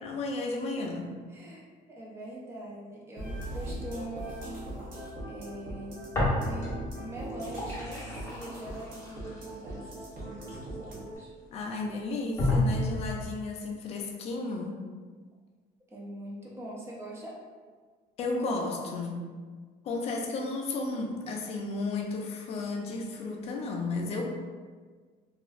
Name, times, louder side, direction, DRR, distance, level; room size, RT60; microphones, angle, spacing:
voice 1, 0.0-1.2 11.5-14.8 18.2-19.3 19.8-24.2, left 3 dB, 35° left, 2 dB, 0.4 m, -33 dB
voice 2, 1.3-1.6 1.9-4.5 5.3-11.3 15.9-17.4, right 1 dB, 15° right, -4 dB, 0.5 m, -43 dB
sound 1, 3.2-11.2, right 1 dB, 55° right, 0.9 m, -40 dB
sound 2, 6.1-6.9 7.2-11.2 11.8-11.9 12.4-13.3, left 1 dB, 15° left, 0.8 m, -31 dB
2.9 x 2.4 x 2.4 m, 1.5 s
cardioid pair, 165°, 18 cm